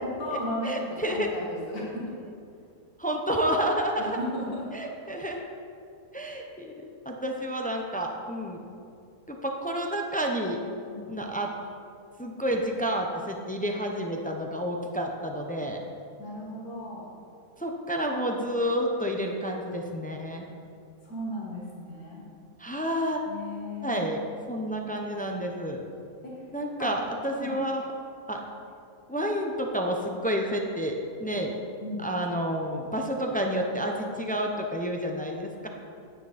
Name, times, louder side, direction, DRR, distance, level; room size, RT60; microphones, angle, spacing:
voice 1, 0.0-0.7 1.1-2.1 4.0-4.6 5.2-5.3 10.9-11.1 16.2-17.1 21.1-22.2 23.3-24.3 26.2-26.3 26.8-26.9 27.3-27.6 31.8-32.1, equal, 90° left, -4 dB, 2.4 m, -35 dB
voice 2, 0.6-1.3 3.0-4.2 4.7-5.4 6.1-6.7 7.0-8.6 9.3-10.6 11.1-11.5 12.2-15.8 17.6-20.4 22.6-23.2 23.8-24.2 24.5-25.8 26.5-27.9 28.3-28.4 29.1-31.5 32.0-35.7, equal, 10° left, 1 dB, 0.3 m, -30 dB
9.8 x 9.3 x 4.2 m, 2.5 s
omnidirectional pair, 1.6 m